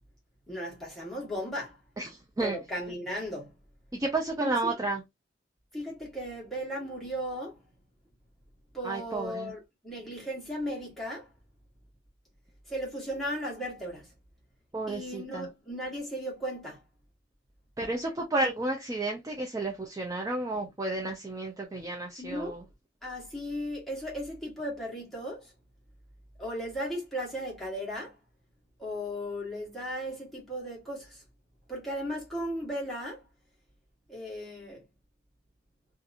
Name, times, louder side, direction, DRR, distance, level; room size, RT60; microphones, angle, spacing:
voice 1, 0.5-1.8 2.4-3.5 4.4-4.7 5.7-7.6 8.7-11.3 12.7-14.1 14.9-16.8 22.2-22.6 23.0-25.5 26.4-28.1 28.8-31.2 31.7-33.2 34.1-34.8, equal, ahead, 1.2 m, -36 dB
voice 2, 2.0-2.6 3.9-5.0 8.8-9.5 14.7-15.5 17.8-22.6, right 2 dB, 15° right, 0.4 m, -32 dB
2.8 x 2.4 x 2.4 m
head